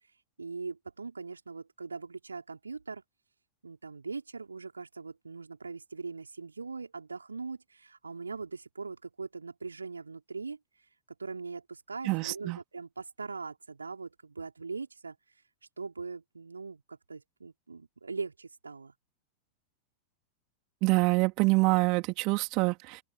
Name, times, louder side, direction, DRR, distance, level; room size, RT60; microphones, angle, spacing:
voice 1, 0.4-3.0 3.6-10.6 11.2-15.2 15.8-18.9, right 4 dB, 75° right, 5.4 m, -41 dB
voice 2, 12.1-12.6 20.8-23.0, right 26 dB, 40° right, 3.5 m, -26 dB
open air
figure-of-eight pair, 90°, 0 cm